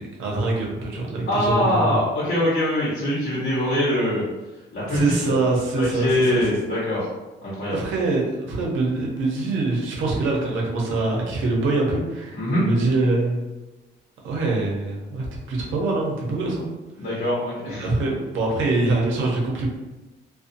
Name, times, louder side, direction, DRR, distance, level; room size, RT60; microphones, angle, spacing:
voice 1, 0.0-2.0 4.9-6.4 7.7-13.4 14.2-16.7 17.6-19.7, right 2 dB, 80° right, -2 dB, 0.8 m, -24 dB
voice 2, 1.3-4.2 4.7-5.3 5.7-7.1 7.4-7.8 12.3-12.6 17.0-17.9, left 1 dB, 60° left, -8 dB, 1.0 m, -23 dB
2.6 x 2.3 x 2.5 m, 1.1 s
cardioid pair, 90°, 20 cm